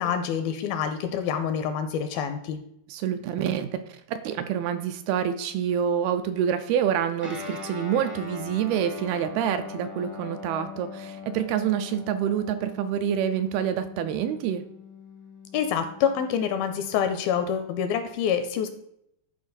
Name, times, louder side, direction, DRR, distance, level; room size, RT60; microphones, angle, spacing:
voice 1, 0.0-2.6 15.5-18.7, left 8 dB, 85° left, 8 dB, 2.2 m, -27 dB
voice 2, 2.9-14.7, right 9 dB, 85° right, 9 dB, 2.3 m, -27 dB
Guitar, 7.2-17.1, left 5 dB, 20° right, 0.4 m, -41 dB
11.0 x 4.8 x 4.0 m, 0.76 s
omnidirectional pair, 4.7 m